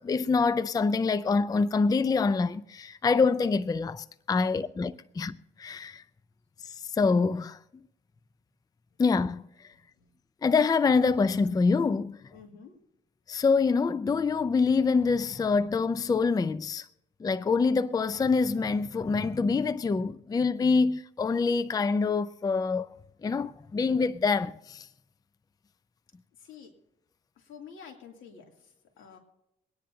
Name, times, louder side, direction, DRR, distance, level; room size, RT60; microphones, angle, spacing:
voice 1, 0.0-6.0 6.6-7.6 9.0-9.7 10.4-12.2 13.3-16.9 17.2-22.9 23.2-24.9, left 4 dB, 20° left, 0.4 m, -26 dB
voice 2, 12.3-12.8 26.4-26.7 27.4-29.2, left 6 dB, 85° left, 2.7 m, -49 dB
23.5 x 10.0 x 2.7 m
cardioid pair, 90°, 20 cm